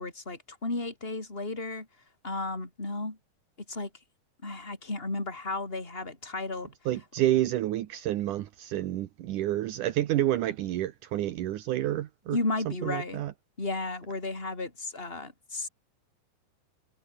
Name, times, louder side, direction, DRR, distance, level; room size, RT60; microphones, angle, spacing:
voice 1, 0.0-1.9 2.2-3.2 3.7-3.9 4.4-6.7 12.3-13.2 13.6-15.7, left 2 dB, 15° left, 5.0 m, -33 dB
voice 2, 6.9-12.4 12.8-13.3, right 13 dB, 75° right, 2.6 m, -29 dB
omnidirectional pair, 3.8 m